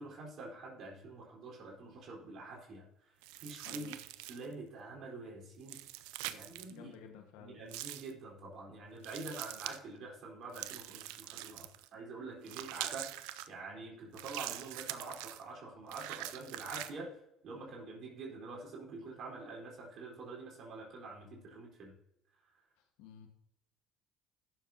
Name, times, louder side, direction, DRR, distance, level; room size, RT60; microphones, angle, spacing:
voice 1, 0.0-2.9 3.4-4.0 4.3-5.8 6.3-6.9 7.4-13.2 13.5-17.2 17.4-21.9, right 3 dB, 55° right, -1 dB, 4.1 m, -46 dB
sound 1, 3.2-4.5 5.6-6.7 7.7-8.1 9.0-9.8 10.5-11.9 12.5-13.5 14.1-15.4 15.9-16.9, right 15 dB, 85° right, 0.5 m, -44 dB
voice 2, 3.6-4.0 6.7-7.6 23.0-23.3, left 7 dB, 80° left, 3 dB, 1.5 m, -52 dB
16.0 x 7.3 x 2.9 m, 0.81 s
supercardioid pair, 80°, 0 cm